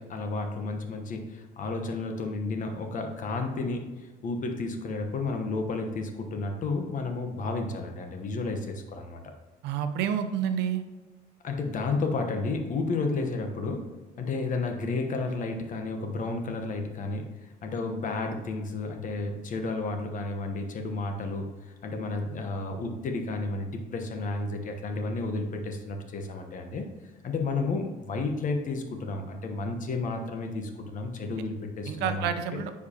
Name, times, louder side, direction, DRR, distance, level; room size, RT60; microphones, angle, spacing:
voice 1, 0.0-3.8 4.2-9.2 11.4-13.9 14.2-17.2 17.6-21.4 21.8-26.8 27.2-32.6, left 3 dB, 50° left, 5 dB, 1.1 m, -32 dB
voice 2, 9.6-10.8 31.9-32.7, right 8 dB, 85° right, 8 dB, 0.7 m, -29 dB
9.6 x 4.7 x 2.9 m, 1.2 s
cardioid pair, 110°, 17 cm